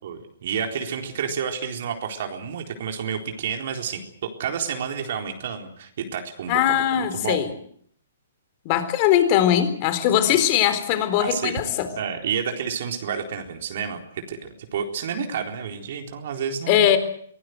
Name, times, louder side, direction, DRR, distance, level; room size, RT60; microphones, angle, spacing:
voice 1, 0.0-7.4 10.3-10.4 11.2-11.6 12.0-14.4 14.7-16.9, right 7 dB, 55° right, 4 dB, 4.0 m, -30 dB
voice 2, 6.5-7.5 8.6-11.9 16.7-17.0, left 11 dB, 40° left, 10 dB, 4.0 m, -20 dB
24.5 x 19.0 x 8.0 m, 0.63 s
hypercardioid pair, 130°, 0 cm